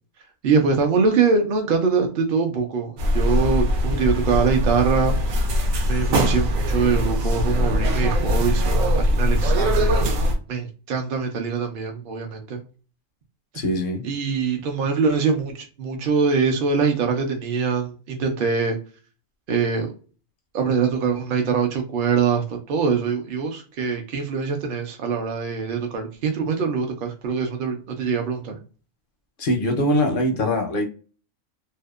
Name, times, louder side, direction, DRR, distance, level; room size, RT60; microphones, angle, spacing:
voice 1, 0.4-5.2 5.9-10.1 10.5-12.6 14.0-18.8 19.5-19.9 20.5-28.6, right 5 dB, 60° right, 3 dB, 0.5 m, -23 dB
sound 1, 3.0-10.3, equal, 85° right, 1.1 m, -21 dB
voice 2, 13.5-14.0 29.4-30.8, left 1 dB, 60° left, 4 dB, 0.6 m, -22 dB
2.6 x 2.1 x 2.3 m, 0.36 s
omnidirectional pair, 1.4 m